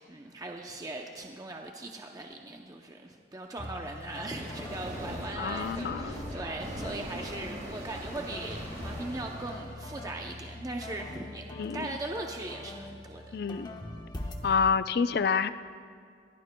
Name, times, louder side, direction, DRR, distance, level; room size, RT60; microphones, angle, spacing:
voice 1, 0.0-11.5 11.7-13.4, right 2 dB, 20° right, 2 dB, 0.6 m, -39 dB
sound 1, 3.6-14.4, left 1 dB, 25° left, 1.0 m, -43 dB
sound 2, 4.0-9.8, equal, 45° right, 3.4 m, -41 dB
voice 2, 5.4-6.2 11.6-11.9 13.3-13.7 14.4-15.5, left 5 dB, 60° left, 12 dB, 0.4 m, -28 dB
22.0 x 16.5 x 2.2 m, 2.2 s
head